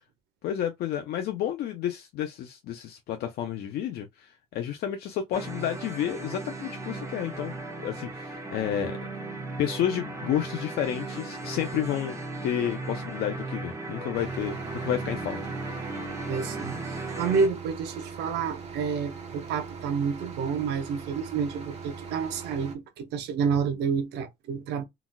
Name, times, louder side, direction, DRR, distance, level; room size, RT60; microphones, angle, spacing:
voice 1, 0.4-7.5 7.8-9.1 9.6-15.4, left 10 dB, 70° left, 0.5 m, -31 dB
sound 1, 5.3-17.5, right 2 dB, 20° right, 0.8 m, -36 dB
sound 2, 14.1-22.7, right 5 dB, 40° right, 1.2 m, -41 dB
voice 2, 16.3-24.8, right 6 dB, 80° right, 0.7 m, -29 dB
3.9 x 2.3 x 2.2 m
cardioid pair, 110°, 17 cm